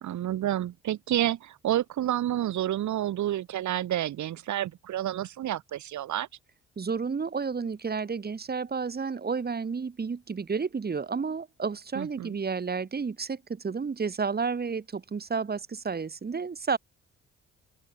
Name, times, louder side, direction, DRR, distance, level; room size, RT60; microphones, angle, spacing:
voice 1, 0.0-6.3 12.0-12.4, right 12 dB, 70° right, 1.9 m, -29 dB
voice 2, 6.8-16.8, right 5 dB, 30° right, 2.6 m, -31 dB
open air
cardioid pair, 90°, 30 cm